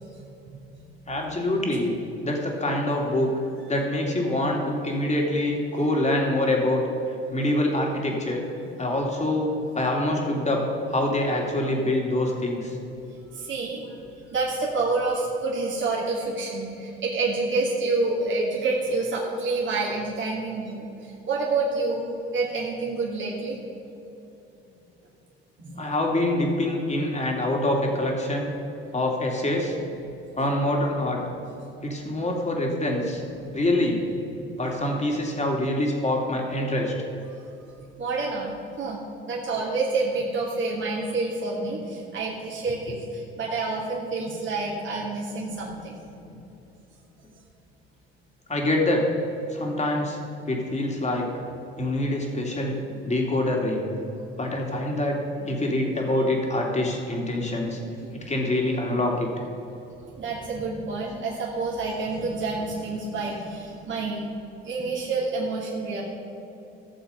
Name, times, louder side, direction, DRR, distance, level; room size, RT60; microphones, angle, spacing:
voice 1, 1.1-1.9 2.2-3.3 3.7-6.8 7.3-8.4 8.8-10.6 10.9-12.8 25.8-28.5 28.9-29.8 30.4-31.2 31.8-33.2 33.5-34.0 34.6-36.9 46.1-46.3 48.5-49.1 49.5-50.2 50.5-51.3 51.8-52.8 53.0-53.9 54.4-55.2 55.5-57.8 58.3-59.3, left 1 dB, 20° left, 0 dB, 2.9 m, -25 dB
voice 2, 13.0-14.0 14.3-22.0 22.3-23.6 25.6-25.8 33.4-33.6 34.4-34.5 38.0-38.5 38.8-39.0 39.3-45.9 52.9-53.0 55.4-55.5 58.0-58.2 60.1-64.4 64.6-66.0, right 3 dB, 40° right, -4 dB, 2.5 m, -28 dB
15.0 x 7.0 x 5.5 m, 2.9 s
hypercardioid pair, 60°, 31 cm